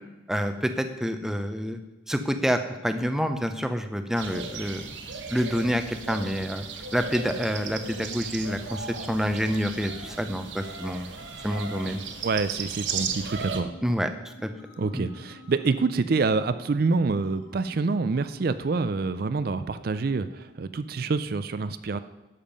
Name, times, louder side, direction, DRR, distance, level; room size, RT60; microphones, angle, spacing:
voice 1, 0.3-1.8 2.1-4.9 5.3-6.7 6.9-11.1 11.4-12.0 13.8-14.5 14.9-15.1, equal, ahead, 7 dB, 0.6 m, -28 dB
sound 1, 4.1-13.6, right 5 dB, 70° right, 1.1 m, -36 dB
voice 2, 12.2-13.8 14.8-22.0, right 4 dB, 50° right, 12 dB, 0.4 m, -26 dB
sound 2, 13.4-20.4, equal, 75° left, 3.4 m, -51 dB
11.5 x 7.3 x 5.3 m, 1.1 s
head